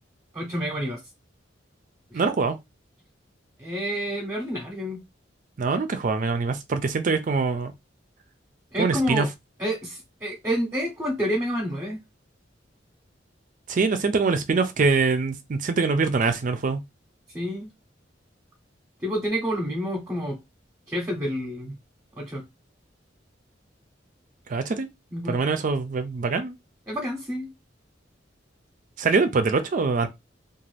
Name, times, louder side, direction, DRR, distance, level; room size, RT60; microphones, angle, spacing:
voice 1, 0.3-1.0 3.6-5.0 8.7-9.3 9.6-12.0 17.3-17.7 19.0-20.4 20.9-21.7 22.2-22.4 25.1-25.4 26.9-27.5, equal, 15° right, 0.8 m, -28 dB
voice 2, 2.1-2.6 5.6-7.7 8.8-9.3 13.7-16.8 24.5-24.9 25.3-26.5 29.0-30.1, right 4 dB, 45° right, 0.4 m, -24 dB
2.5 x 2.4 x 3.2 m
head